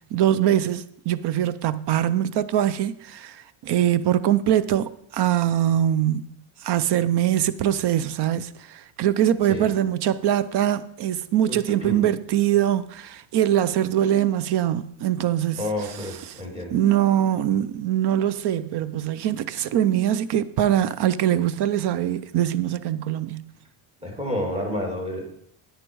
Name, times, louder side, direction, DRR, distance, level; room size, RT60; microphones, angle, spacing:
voice 1, 0.1-6.3 6.6-16.3 16.7-23.5, right 11 dB, 55° right, 0.7 m, -23 dB
voice 2, 11.5-12.0 15.6-16.8 24.0-25.3, left 1 dB, 10° right, 2.6 m, -30 dB
9.8 x 9.6 x 4.6 m
cardioid pair, 130°, 49 cm